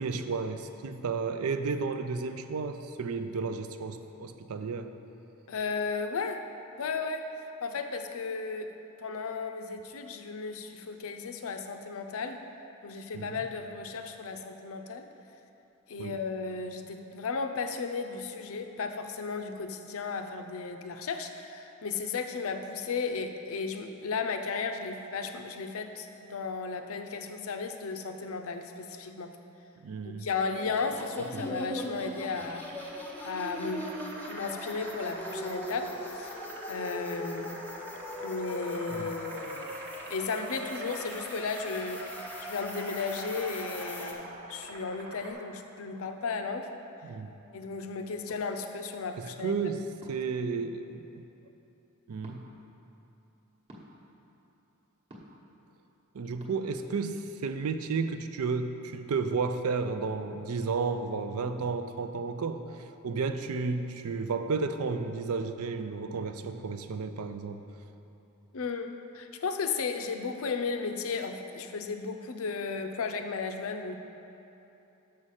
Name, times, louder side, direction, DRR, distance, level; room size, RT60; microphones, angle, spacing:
voice 1, 0.0-4.9 13.1-13.4 16.0-16.1 29.8-30.3 31.3-31.5 38.9-39.1 47.0-47.3 49.2-51.2 52.1-52.5 56.1-62.6 63.0-67.6, right 4 dB, 75° right, 9 dB, 0.4 m, -32 dB
voice 2, 5.5-6.4 6.8-7.2 7.6-8.7 9.0-12.4 12.8-15.1 15.9-29.3 30.0-32.7 33.2-33.9 34.3-36.4 36.7-37.6 38.2-39.7 40.1-46.7 47.5-49.6 68.5-73.9, left 4 dB, 70° left, 6 dB, 0.5 m, -34 dB
sound 1, 30.6-44.1, left 1 dB, 10° left, 0.6 m, -40 dB
sound 2, 32.3-45.3, right 2 dB, 55° right, 1.0 m, -46 dB
sound 3, 48.3-48.5 50.0-50.3 52.2-52.4 53.7-53.9 55.1-55.4 56.4-56.5, equal, 25° right, 1.0 m, -50 dB
6.2 x 5.6 x 6.4 m, 3.0 s
head